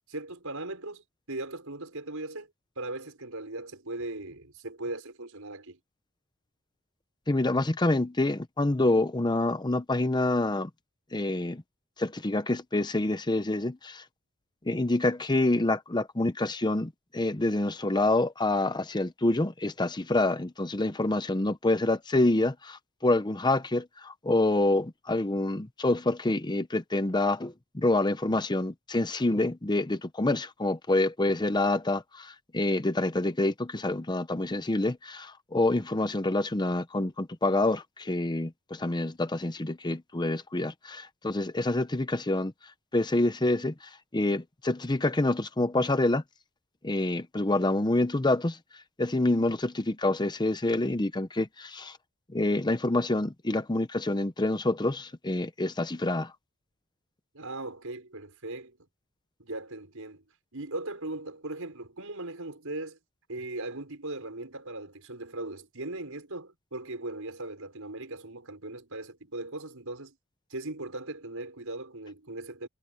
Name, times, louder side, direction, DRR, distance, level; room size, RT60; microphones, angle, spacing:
voice 1, 0.1-2.5 2.8-5.8 57.3-58.8 59.4-60.2 60.5-63.0 63.3-70.2 70.5-72.7, right 2 dB, 70° right, 5.9 m, -38 dB
voice 2, 7.3-10.7 11.1-11.6 12.0-14.0 14.7-42.5 42.9-46.2 46.8-48.6 49.0-52.0 52.3-56.3, left 2 dB, 20° left, 0.7 m, -27 dB
head